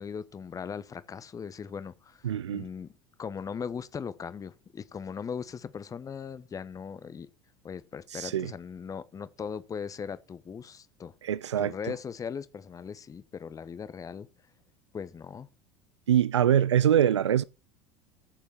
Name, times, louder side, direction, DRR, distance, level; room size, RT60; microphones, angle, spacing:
voice 1, 0.0-2.9 3.2-7.3 7.6-11.1 11.6-14.3 14.9-15.5, left 6 dB, 25° left, 1.0 m, -39 dB
voice 2, 2.2-2.7 8.1-8.5 11.2-11.7 16.1-17.4, right 10 dB, 80° right, 0.5 m, -24 dB
14.0 x 7.1 x 4.3 m
figure-of-eight pair, 75°, 15 cm